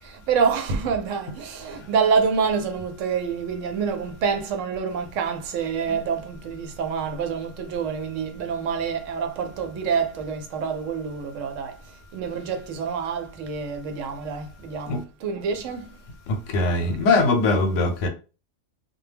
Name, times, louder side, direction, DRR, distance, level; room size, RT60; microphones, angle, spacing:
voice 1, 0.0-16.0, right 6 dB, 80° right, 0.9 m, -27 dB
voice 2, 16.5-18.1, left 3 dB, 80° left, 1.0 m, -21 dB
2.2 x 2.1 x 3.3 m
omnidirectional pair, 1.3 m